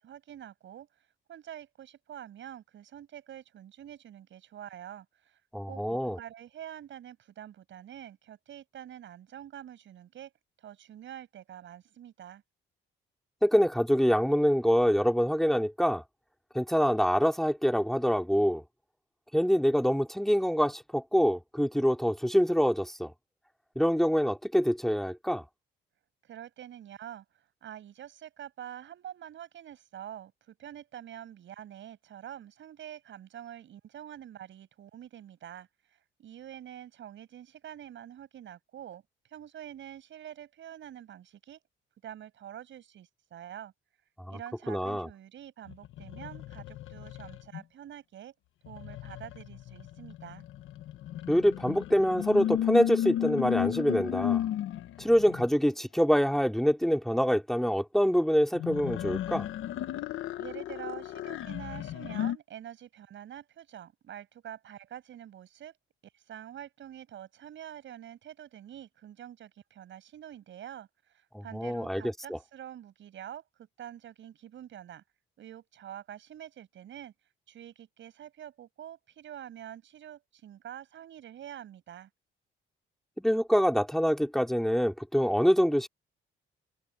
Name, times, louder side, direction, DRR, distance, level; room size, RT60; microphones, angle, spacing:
voice 1, 0.0-0.9 1.3-5.4 5.6-10.3 10.6-12.4 26.2-39.0 39.3-41.6 42.0-43.7 44.3-48.3 48.6-50.4 60.4-65.7 66.1-75.0 75.4-77.1 77.5-82.1, right 10 dB, 70° right, 7.6 m, -46 dB
voice 2, 5.5-6.2 13.4-16.0 16.5-18.6 19.3-23.1 23.7-25.4 44.3-44.4 44.7-45.1 51.3-54.4 55.0-59.5 71.3-72.0 72.3-72.4 83.2-85.9, equal, ahead, 3.0 m, -25 dB
sound 1, 45.7-47.6 48.6-55.5 58.5-62.4, left 11 dB, 80° left, 1.4 m, -34 dB
cardioid pair, 90°, 20 cm